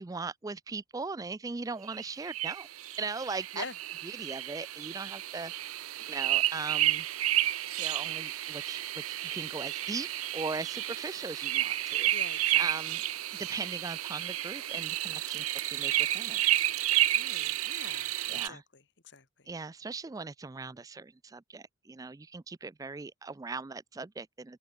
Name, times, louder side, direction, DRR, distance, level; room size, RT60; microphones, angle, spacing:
voice 1, 0.0-2.7 3.0-3.6 4.0-5.5 6.1-7.1 7.8-10.1 10.3-13.0 13.4-16.4 18.3-18.6 19.5-24.6, right 4 dB, 15° right, 0.3 m, -39 dB
sound 1, 1.9-18.5, right 14 dB, 90° right, 0.8 m, -31 dB
voice 2, 12.1-12.7 17.1-19.2, left 4 dB, 55° left, 2.5 m, -45 dB
head